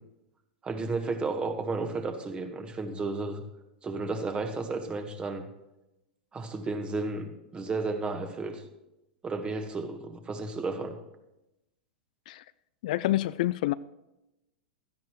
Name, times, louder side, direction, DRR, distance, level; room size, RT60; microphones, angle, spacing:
voice 1, 0.6-3.4 3.8-5.5 6.3-8.6 9.2-11.0, right 3 dB, 20° right, 1.6 m, -33 dB
voice 2, 12.8-13.7, left 16 dB, 60° left, 0.4 m, -27 dB
16.5 x 12.5 x 3.2 m
figure-of-eight pair, 95°, 5 cm